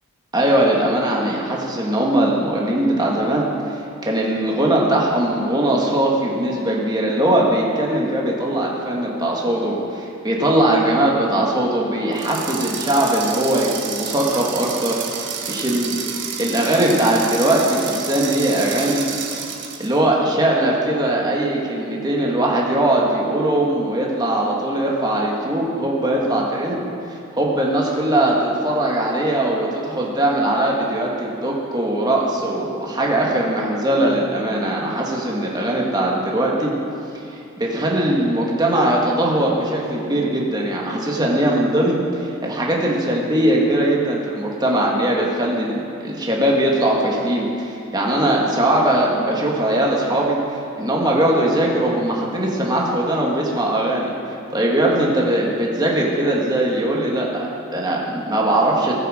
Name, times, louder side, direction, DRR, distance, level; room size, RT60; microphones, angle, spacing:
voice 1, 0.3-15.9 16.4-19.1 19.8-26.8 27.4-36.7 37.3-50.4 50.8-54.1 54.5-58.9, right 1 dB, 20° right, -3 dB, 1.8 m, -20 dB
sound 1, 12.1-20.0, right 7 dB, 60° right, 1.3 m, -30 dB
20.0 x 6.8 x 5.1 m, 2.6 s
head